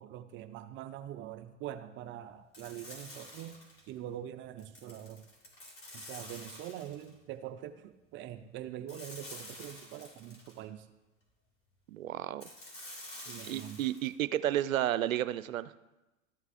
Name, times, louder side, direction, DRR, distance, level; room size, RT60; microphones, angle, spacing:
voice 1, 0.0-3.5 3.9-5.2 5.9-10.9 13.3-13.8, right 11 dB, 30° right, 10 dB, 0.5 m, -44 dB
sound 1, 2.5-3.9 4.6-7.1 8.9-10.6 12.4-14.1, left 1 dB, 30° left, 3.4 m, -48 dB
voice 2, 11.9-12.4 13.5-15.7, right 12 dB, 85° right, 15 dB, 0.5 m, -32 dB
13.5 x 7.9 x 2.5 m, 1.0 s
hypercardioid pair, 100°, 40 cm